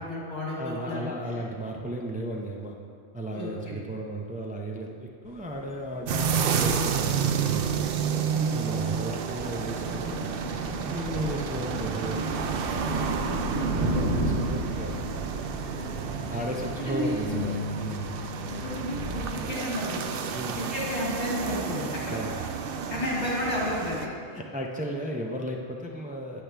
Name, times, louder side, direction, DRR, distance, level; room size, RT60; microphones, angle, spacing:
voice 1, 0.0-1.1 3.3-3.8 8.1-8.5 11.2-11.3 13.2-13.7 16.8-17.1 18.5-20.2 20.6-22.2 22.9-24.1, left 1 dB, 85° left, -6 dB, 2.9 m, -32 dB
voice 2, 0.6-2.8 3.1-7.9 8.5-10.3 10.7-12.5 13.7-15.0 16.3-18.1 20.3-20.6 22.1-22.5 24.3-26.4, right 1 dB, 10° right, 0 dB, 0.4 m, -34 dB
sound 1, 5.3-19.4, right 2 dB, 85° right, 1.3 m, -34 dB
sound 2, 6.1-24.1, right 7 dB, 60° right, 0.7 m, -31 dB
Bass guitar, 17.2-23.5, left 4 dB, 35° left, 0.5 m, -41 dB
8.8 x 8.5 x 3.4 m, 2.3 s
omnidirectional pair, 1.2 m